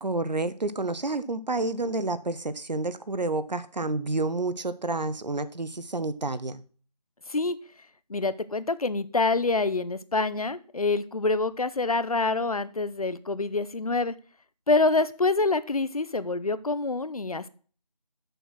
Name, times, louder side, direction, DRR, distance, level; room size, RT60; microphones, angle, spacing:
voice 1, 0.0-6.6, right 2 dB, 80° right, 13 dB, 0.9 m, -29 dB
voice 2, 8.1-14.1 14.7-17.5, left 3 dB, 60° left, 15 dB, 0.7 m, -26 dB
6.9 x 5.9 x 6.1 m, 0.40 s
figure-of-eight pair, 175°, 21 cm